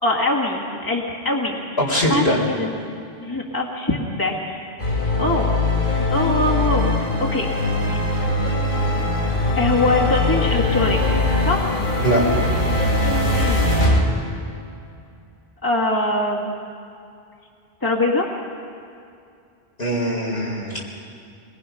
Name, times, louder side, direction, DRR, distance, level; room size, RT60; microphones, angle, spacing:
voice 1, 0.0-1.6 2.1-2.8 3.2-4.6 5.2-5.5 6.1-7.5 7.8-8.0 9.6-11.0 11.4-11.7 13.3-13.7 15.6-16.5 17.8-18.3, left 2 dB, 20° left, -3 dB, 2.0 m, -22 dB
voice 2, 1.8-2.4 12.0-12.2 19.8-20.8, equal, 75° left, -3 dB, 4.5 m, -21 dB
sound 1, 4.8-14.0, left 2 dB, 55° left, 3.2 m, -21 dB
22.0 x 21.5 x 5.8 m, 2.5 s
omnidirectional pair, 1.0 m